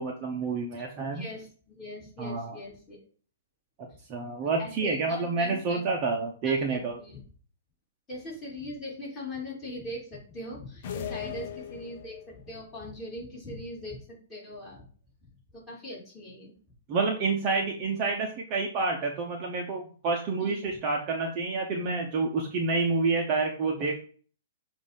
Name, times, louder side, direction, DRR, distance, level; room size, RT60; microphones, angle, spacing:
voice 1, 0.0-1.3 2.2-2.6 4.1-7.0 16.9-24.0, right 4 dB, 30° right, 0 dB, 0.9 m, -28 dB
voice 2, 0.8-3.0 3.9-4.0 4.6-5.8 6.4-7.2 8.1-14.8 15.5-16.5 20.4-20.7, left 1 dB, 15° left, -7 dB, 3.3 m, -41 dB
sound 1, 10.8-12.4, left 8 dB, 45° left, 0.8 m, -38 dB
7.8 x 2.7 x 5.2 m, 0.43 s
hypercardioid pair, 160°, 0 cm